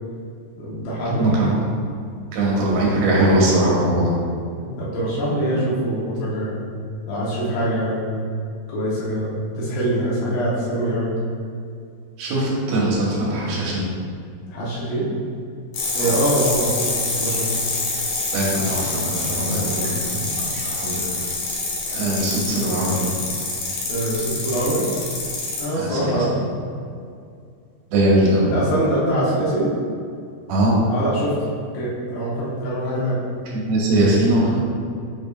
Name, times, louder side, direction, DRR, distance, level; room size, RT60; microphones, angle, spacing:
voice 1, 0.6-1.4 4.5-6.5 7.1-8.1 8.7-11.1 14.5-15.1 15.9-17.5 19.4-19.9 23.9-24.8 25.6-26.3 28.5-29.7 30.9-31.5 31.7-33.2, right 1 dB, 85° left, -8 dB, 3.4 m, -24 dB
voice 2, 1.1-1.5 2.3-4.1 12.2-13.9 16.0-16.2 18.3-21.0 21.9-23.1 25.7-26.2 27.9-28.5 30.5-30.8 33.5-34.6, right 1 dB, 75° right, -5 dB, 3.2 m, -21 dB
sound 1, 15.7-25.6, left 3 dB, 65° left, 2.4 m, -26 dB
7.9 x 5.1 x 2.4 m, 2.3 s
omnidirectional pair, 5.0 m